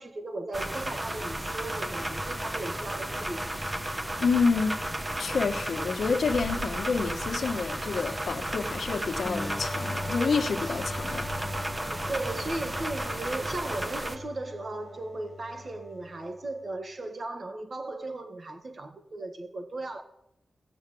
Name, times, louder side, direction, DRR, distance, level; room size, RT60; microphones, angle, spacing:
voice 1, 0.0-3.5 11.9-20.0, right 2 dB, 50° right, 1.7 m, -36 dB
sound 1, 0.5-14.2, right 1 dB, 20° right, 1.1 m, -33 dB
voice 2, 4.2-4.9 5.2-11.3, left 5 dB, 75° left, 1.3 m, -28 dB
sound 2, 6.3-8.2 8.5-8.7 9.2-9.3 9.6-9.7 10.0-13.1, right 1 dB, 75° right, 1.9 m, -46 dB
sound 3, 9.2-16.7, left 1 dB, 15° left, 1.2 m, -40 dB
16.0 x 7.2 x 8.4 m
cardioid pair, 75°, 0 cm